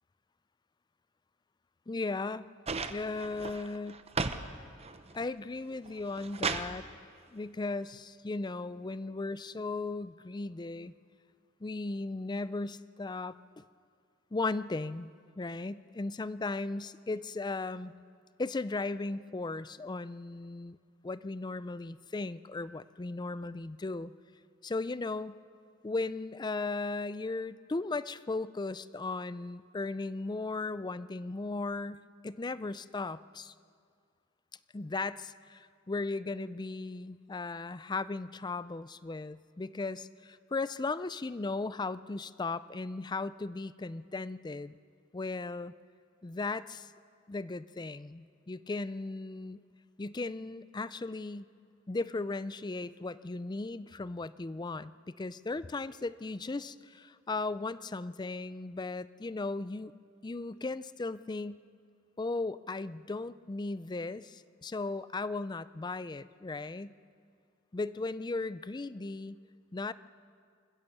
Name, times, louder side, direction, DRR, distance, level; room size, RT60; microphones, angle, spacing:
voice 1, 1.9-2.5 2.9-4.0 5.1-6.9 7.3-10.9 11.6-13.6 14.3-15.1 15.4-17.9 18.4-20.8 21.0-24.1 24.6-25.4 25.8-33.5 34.7-44.7 45.1-45.7 46.2-46.9 47.3-49.6 50.0-51.5 51.9-59.9 60.2-61.6 62.2-67.0 67.7-69.4 69.7-69.9, left 3 dB, 20° left, 16 dB, 0.4 m, -36 dB
sound 1, 2.7-4.4 4.8-5.3 5.8-6.7 7.9-8.0, right 4 dB, 35° right, 0.8 m, -35 dB
25.0 x 16.0 x 7.1 m, 2.2 s
head